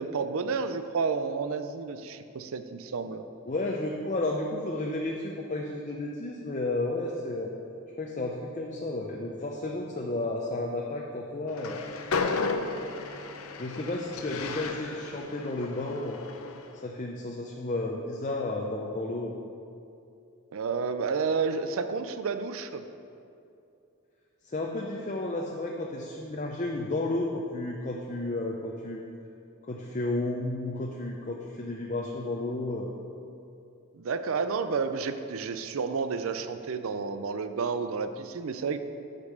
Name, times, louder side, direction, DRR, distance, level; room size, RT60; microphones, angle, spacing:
voice 1, 0.0-3.2 20.5-22.8 33.9-38.8, right 5 dB, 70° right, 10 dB, 0.4 m, -31 dB
voice 2, 3.5-7.5 8.0-11.8 13.6-16.2 16.8-19.3 24.4-29.0 29.6-32.9, left 2 dB, 35° left, 0 dB, 0.5 m, -32 dB
Train, 11.5-16.8, left 4 dB, 75° left, 0.5 m, -34 dB
8.2 x 5.2 x 6.6 m, 2.6 s
head